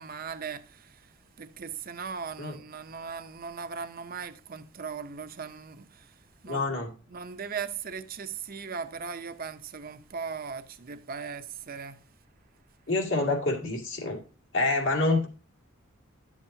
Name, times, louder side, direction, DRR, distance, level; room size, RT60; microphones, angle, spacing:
voice 1, 0.0-6.1 6.4-6.8 7.1-12.0, right 6 dB, 45° right, 0.7 m, -38 dB
voice 2, 6.5-6.9 12.9-14.2 14.5-15.3, left 2 dB, 70° left, 2.4 m, -27 dB
11.5 x 7.3 x 2.7 m
head